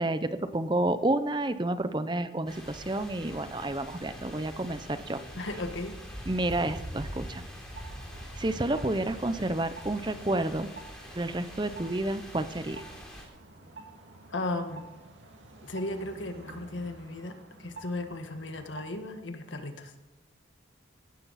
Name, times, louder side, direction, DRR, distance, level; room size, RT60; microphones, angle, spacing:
voice 1, 0.0-5.2 6.3-7.4 8.4-10.7 11.1-12.8, right 1 dB, 25° right, 11 dB, 0.6 m, -30 dB
Wind instrument woodwind instrument, 2.3-6.7, left 2 dB, 55° left, 5.2 m, -58 dB
sound 1, 2.5-13.2, equal, 5° left, 3.4 m, -44 dB
voice 2, 5.3-6.0 14.3-14.8 15.6-19.9, left 2 dB, 80° left, 6 dB, 1.7 m, -36 dB
sound 2, 7.7-19.1, right 3 dB, 75° right, 2.4 m, -50 dB
17.0 x 12.5 x 4.2 m, 1.0 s
head